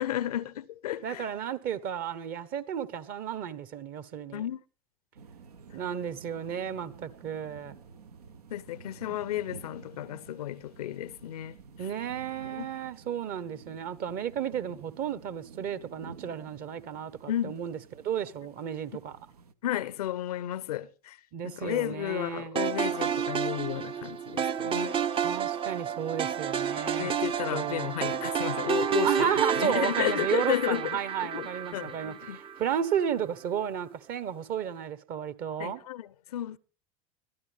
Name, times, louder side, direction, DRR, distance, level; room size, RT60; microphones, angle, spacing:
voice 1, 0.0-1.2 4.3-4.6 8.5-11.5 12.6-12.7 17.3-17.6 19.6-21.2 21.4-25.0 26.8-32.4 35.6-36.6, left 12 dB, 80° left, 0.6 m, -33 dB
voice 2, 1.0-4.5 5.7-7.8 11.8-19.2 21.3-22.6 25.2-27.1 27.5-27.9 29.0-35.8, right 9 dB, 50° right, 1.3 m, -33 dB
sound 1, 5.2-19.5, right 5 dB, 85° right, 0.8 m, -51 dB
sound 2, 22.6-32.8, right 7 dB, 30° right, 0.6 m, -30 dB
21.5 x 13.0 x 3.5 m
hypercardioid pair, 85°, 19 cm